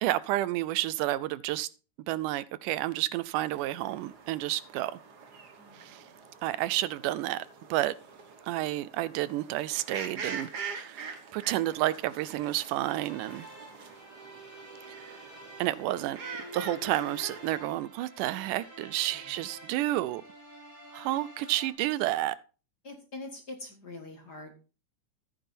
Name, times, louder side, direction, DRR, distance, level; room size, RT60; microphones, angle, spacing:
voice 1, 0.0-1.7 2.1-5.0 5.8-6.0 6.4-7.5 7.7-7.9 8.5-13.5 15.0-15.2 15.6-16.2 16.5-20.2 20.9-22.4, right 15 dB, 85° right, 2.2 m, -30 dB
sound 1, 3.4-17.6, right 5 dB, 50° right, 1.2 m, -44 dB
voice 2, 5.6-6.2 19.1-19.5 22.8-24.6, left 2 dB, 40° left, 1.8 m, -45 dB
sound 2, 12.8-21.7, equal, 5° right, 4.5 m, -48 dB
14.0 x 9.3 x 2.7 m
omnidirectional pair, 3.6 m